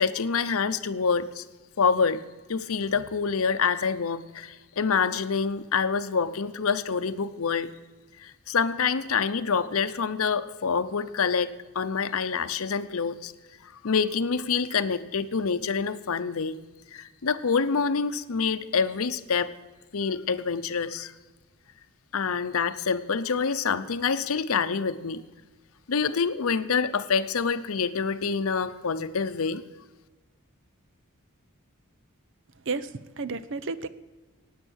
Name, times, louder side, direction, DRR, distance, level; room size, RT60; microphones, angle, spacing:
voice 1, 0.0-1.4 1.8-2.2 2.5-7.7 8.2-13.3 13.6-16.6 16.9-19.5 19.9-21.1 22.1-25.2 25.9-29.6, left 5 dB, 70° left, 12 dB, 0.7 m, -26 dB
voice 2, 32.6-33.9, right 4 dB, 60° right, 15 dB, 0.7 m, -32 dB
16.0 x 9.6 x 6.4 m, 1.2 s
head